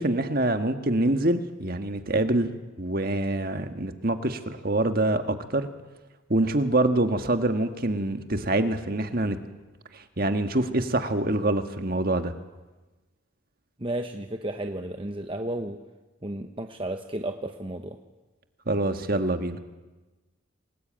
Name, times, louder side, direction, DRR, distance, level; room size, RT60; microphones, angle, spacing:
voice 1, 0.0-2.5 2.8-5.7 6.3-9.4 9.9-12.3 18.7-19.6, right 2 dB, 45° right, 8 dB, 1.6 m, -25 dB
voice 2, 13.8-15.8 16.2-18.0, right 1 dB, 25° right, 5 dB, 1.0 m, -33 dB
27.0 x 19.0 x 8.9 m, 1.2 s
head